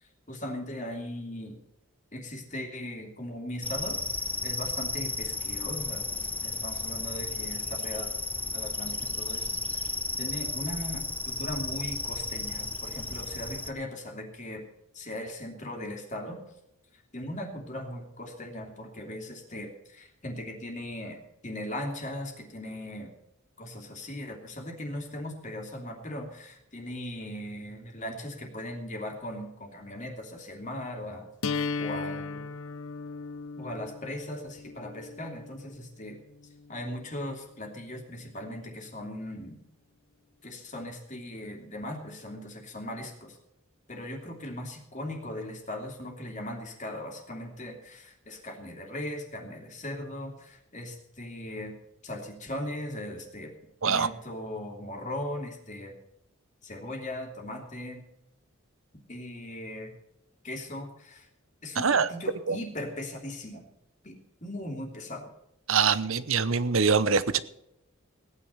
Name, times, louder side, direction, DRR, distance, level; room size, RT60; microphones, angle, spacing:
voice 1, 0.0-1.6 2.1-4.0 4.4-8.1 8.5-14.6 14.9-16.4 16.9-23.1 23.6-32.5 33.6-36.2 36.7-39.6 40.4-43.4 43.9-51.7 52.0-53.5 53.8-55.9 56.6-58.0 59.1-59.9 60.4-61.3 61.6-63.6 64.0-65.3, left 1 dB, 35° left, 2 dB, 2.7 m, -39 dB
sound 1, 3.6-13.7, left 3 dB, 5° left, 0.7 m, -33 dB
sound 2, 31.4-37.4, left 4 dB, 80° left, 0.8 m, -37 dB
voice 2, 61.8-62.1 62.5-62.6 65.7-67.4, right 5 dB, 70° right, 15 dB, 0.8 m, -24 dB
17.0 x 9.9 x 5.6 m, 0.81 s
head